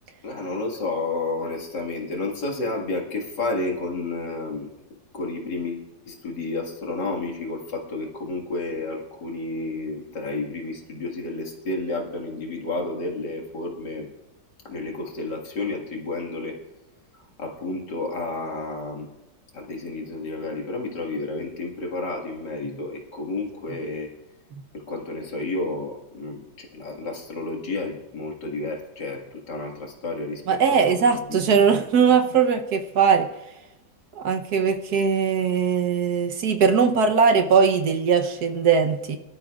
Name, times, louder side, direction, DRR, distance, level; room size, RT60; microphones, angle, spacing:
voice 1, 0.2-4.7 5.1-14.1 14.6-16.6 17.4-19.1 19.5-24.1 24.7-31.4 31.7-31.9, left 2 dB, 70° left, 1 dB, 2.5 m, -31 dB
voice 2, 30.5-33.3 34.1-39.2, right 6 dB, 65° right, 7 dB, 1.3 m, -20 dB
23.0 x 12.5 x 2.4 m, 0.97 s
omnidirectional pair, 2.0 m